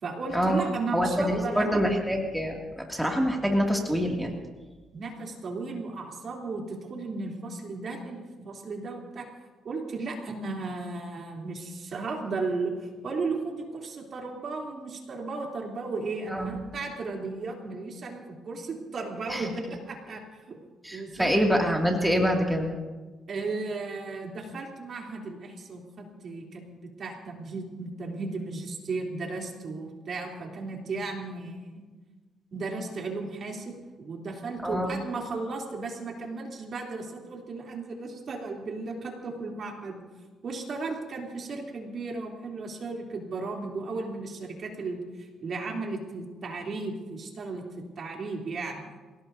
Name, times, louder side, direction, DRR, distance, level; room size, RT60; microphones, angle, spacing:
voice 1, 0.0-1.8 4.9-9.3 9.6-20.6 20.9-21.5 23.3-31.6 32.5-40.0 40.4-47.6 48.0-48.8, right 3 dB, 55° right, 0 dB, 3.2 m, -35 dB
voice 2, 0.9-4.3 16.3-16.6 19.3-19.5 20.8-22.7 34.6-35.0, equal, 5° right, 0 dB, 2.4 m, -26 dB
27.5 x 17.5 x 2.7 m, 1.3 s
cardioid pair, 90°, 0 cm